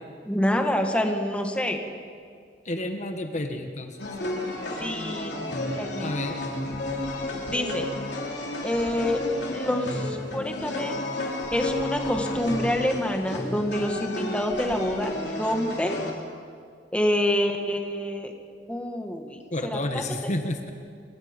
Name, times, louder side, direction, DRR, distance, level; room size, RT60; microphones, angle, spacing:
voice 1, 0.3-1.8 4.8-6.2 7.5-7.9 8.6-9.2 9.5-11.0 11.5-16.0 16.9-18.3 18.7-20.0, left 1 dB, 5° left, 3 dB, 1.8 m, -27 dB
voice 2, 2.6-4.0 6.0-6.4 19.5-20.7, left 1 dB, 40° left, 5 dB, 1.4 m, -30 dB
sound 1, 4.0-16.1, left 1 dB, 70° left, 3.5 m, -32 dB
27.5 x 22.5 x 5.3 m, 2.1 s
head